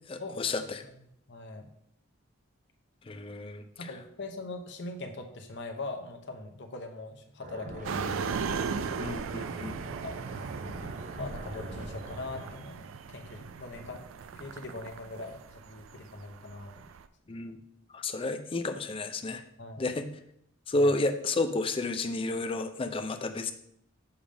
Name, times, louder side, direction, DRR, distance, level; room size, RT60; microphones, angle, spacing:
voice 1, 0.1-0.8 3.1-3.9 9.0-9.7 17.3-17.6 17.9-19.4 19.8-20.1 20.7-23.5, left 2 dB, 25° left, 7 dB, 0.4 m, -31 dB
voice 2, 1.3-1.7 3.8-8.3 10.0-10.5 11.2-14.1 14.3-16.9 17.3-17.4 19.6-19.8 20.7-20.9, left 2 dB, 60° left, 5 dB, 0.8 m, -41 dB
sound 1, 7.4-12.5, right 1 dB, 35° right, 0.7 m, -43 dB
sound 2, 7.8-17.1, right 5 dB, 75° right, 0.4 m, -38 dB
7.1 x 3.5 x 5.0 m, 0.73 s
head